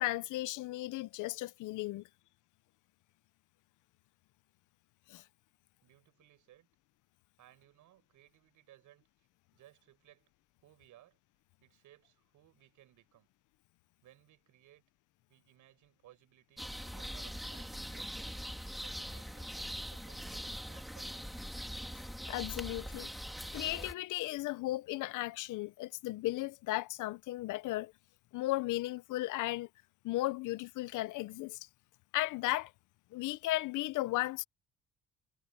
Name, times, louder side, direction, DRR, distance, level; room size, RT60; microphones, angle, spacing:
voice 1, 0.0-2.0 5.1-5.2 22.3-23.1 23.5-27.9 28.3-29.7 30.0-31.6 32.1-32.7 33.1-34.4, left 17 dB, 85° left, 0.7 m, -35 dB
voice 2, 5.8-6.7 7.4-9.3 9.5-10.3 10.6-11.2 11.6-13.3 14.0-14.8 15.3-18.4 18.8-21.6, right 14 dB, 85° right, 6.9 m, -62 dB
sound 1, 16.6-23.9, equal, ahead, 2.1 m, -42 dB
cardioid pair, 90°, 30 cm